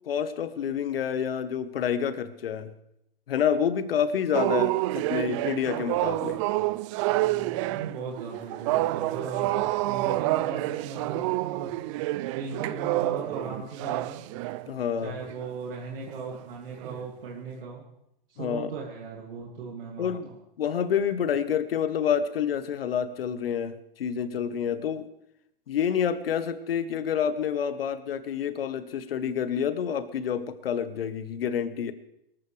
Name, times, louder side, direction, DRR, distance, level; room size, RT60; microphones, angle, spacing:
voice 1, 0.1-2.7 3.3-6.4 14.7-15.1 18.4-18.7 20.0-20.3 20.6-25.1 25.7-31.9, left 8 dB, 75° left, 12 dB, 1.4 m, -28 dB
sound 1, 4.3-14.7 15.2-15.5 16.1-16.4 16.8-17.0, right 18 dB, 35° right, 0.4 m, -28 dB
voice 2, 7.1-11.7 12.3-14.2 15.0-17.8 18.3-20.4, right 5 dB, 75° right, -2 dB, 2.8 m, -38 dB
23.0 x 13.5 x 3.4 m, 0.79 s
hypercardioid pair, 130°, 29 cm